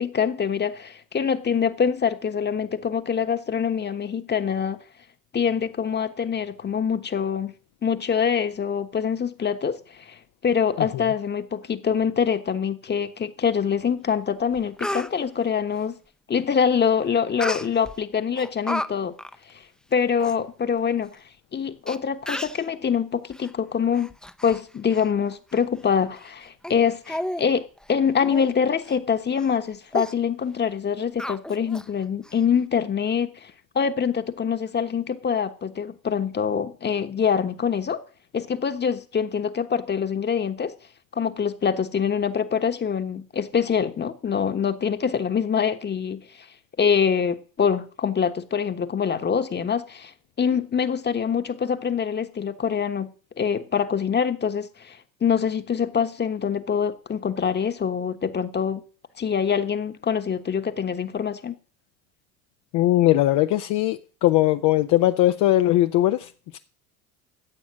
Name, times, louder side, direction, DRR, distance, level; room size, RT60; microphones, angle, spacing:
voice 1, 0.0-4.8 5.3-7.5 7.8-15.9 16.3-19.1 19.5-19.6 19.9-21.2 21.5-24.1 24.4-38.0 38.3-40.7 41.1-46.5 46.8-50.1 50.4-58.8 59.2-61.5, left 7 dB, 25° left, 1.3 m, -25 dB
Speech, 14.1-14.2 14.5-15.1 17.4-18.0 18.4-18.9 19.2-19.4 19.9-20.0 20.2-20.4 21.1-21.2 21.9-22.0 22.3-22.6 23.3-23.5 23.9-24.6 24.9-25.1 25.5-25.6 26.2-26.3 26.6-26.8 27.1-27.5 27.8-27.9 28.3-28.5 28.9-29.0 29.4-29.6 29.9-30.1 31.2-31.9 32.2-32.3, left 1 dB, ahead, 0.8 m, -32 dB
voice 2, 62.7-66.6, left 15 dB, 45° left, 0.8 m, -20 dB
14.5 x 8.3 x 6.3 m
figure-of-eight pair, 70°, 43 cm